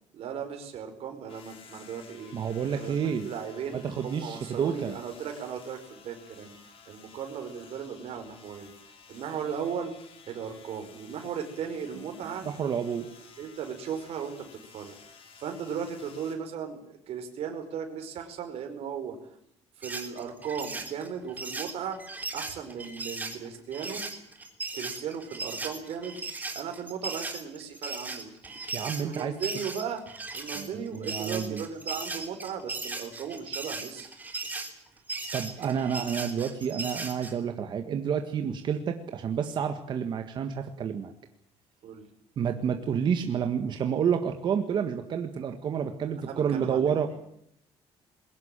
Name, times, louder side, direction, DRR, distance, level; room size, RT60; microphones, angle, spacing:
voice 1, 0.1-2.3 2.7-3.8 4.0-6.6 6.9-8.7 9.1-9.9 10.3-12.5 12.9-13.0 13.4-14.9 15.4-19.2 19.8-22.0 22.3-24.0 24.7-26.2 26.5-28.6 29.0-30.0 30.3-34.1 41.8-42.0 46.2-46.9, right 7 dB, 60° right, 5 dB, 4.9 m, -36 dB
sound 1, 1.3-16.4, left 6 dB, 55° left, 5.2 m, -53 dB
voice 2, 2.3-3.3 3.7-5.0 12.4-13.1 28.7-29.3 30.5-31.6 35.3-41.1 42.4-47.1, right 7 dB, 40° right, 6 dB, 1.7 m, -29 dB
sound 2, 19.8-37.3, right 3 dB, 15° right, 3.4 m, -37 dB
22.0 x 18.5 x 8.9 m, 0.73 s
cardioid pair, 170°, 12 cm